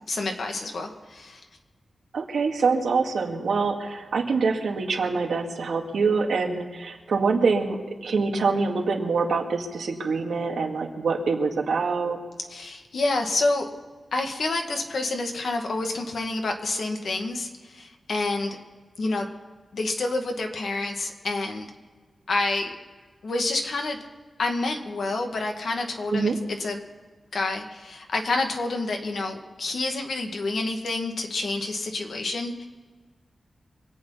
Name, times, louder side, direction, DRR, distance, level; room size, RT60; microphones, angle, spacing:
voice 1, 0.1-1.4 12.5-13.7 14.1-18.6 19.0-19.3 19.7-21.7 22.3-22.8 23.2-24.0 24.4-26.3 26.6-26.8 27.3-32.7, left 2 dB, 70° left, 3 dB, 2.0 m, -28 dB
voice 2, 2.1-12.2 26.1-26.4, right 4 dB, 90° right, 2 dB, 2.0 m, -25 dB
24.5 x 8.7 x 5.7 m, 1.4 s
wide cardioid pair, 125°, 0 cm